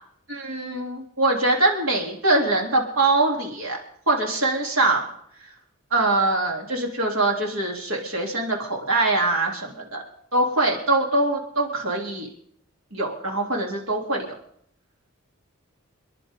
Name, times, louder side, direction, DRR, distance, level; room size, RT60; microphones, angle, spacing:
voice 1, 0.3-3.8 4.1-5.1 5.9-10.0 10.3-12.3 12.9-14.3, right 2 dB, 85° right, 0 dB, 3.4 m, -23 dB
28.5 x 10.5 x 3.8 m, 0.66 s
head